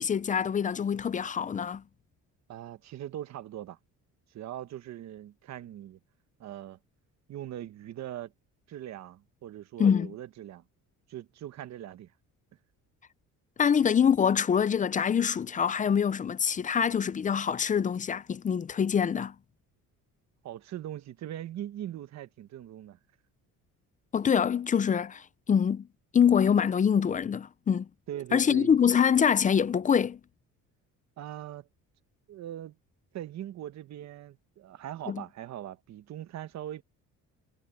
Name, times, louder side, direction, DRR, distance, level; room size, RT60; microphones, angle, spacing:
voice 1, 0.0-1.8 9.8-10.1 13.6-19.3 24.1-25.9 26.1-27.9 28.3-30.2 35.1-35.2, left 7 dB, 25° left, 0.5 m, -25 dB
voice 2, 2.5-3.8 4.3-6.0 6.4-6.8 7.3-8.3 8.7-10.6 11.1-12.1 20.4-23.0 28.1-29.0 31.2-31.7 32.3-32.8 33.1-36.8, right 12 dB, 55° right, 1.2 m, -41 dB
cardioid pair, 145°, 32 cm